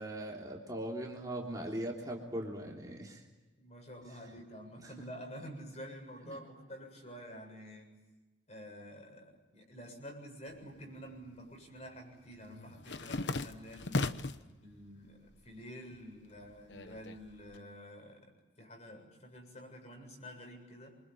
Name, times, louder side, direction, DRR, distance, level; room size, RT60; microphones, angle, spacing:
voice 1, 0.0-3.2 4.8-4.9 6.3-6.4, right 1 dB, 20° right, -2 dB, 3.3 m, -40 dB
voice 2, 3.6-7.9 8.5-14.2 14.6-21.0, equal, 35° left, 3 dB, 7.4 m, -49 dB
sound 1, 10.6-11.4 11.7-14.5 14.9-15.6 15.9-17.6, left 2 dB, 70° left, 1.1 m, -38 dB
28.0 x 25.0 x 7.8 m, 1.2 s
head